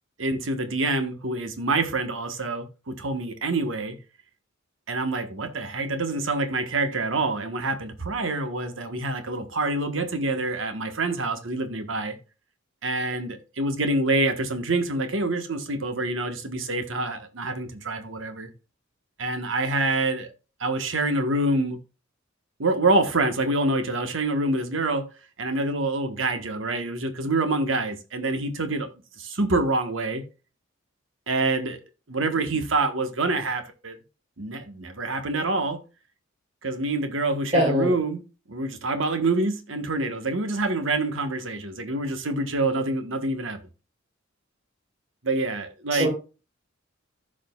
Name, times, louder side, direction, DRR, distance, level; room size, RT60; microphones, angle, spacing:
voice 1, 0.2-4.0 4.9-12.2 12.8-18.5 19.2-20.3 20.6-21.8 22.6-25.1 25.4-28.9 29.2-30.2 31.3-31.8 32.1-34.0 34.4-35.8 36.6-38.2 38.5-43.6 45.2-46.1, right 2 dB, 70° right, 1.4 m, -26 dB
voice 2, 37.5-37.9 45.9-46.1, equal, 35° right, 3.0 m, -21 dB
15.0 x 5.0 x 2.4 m
head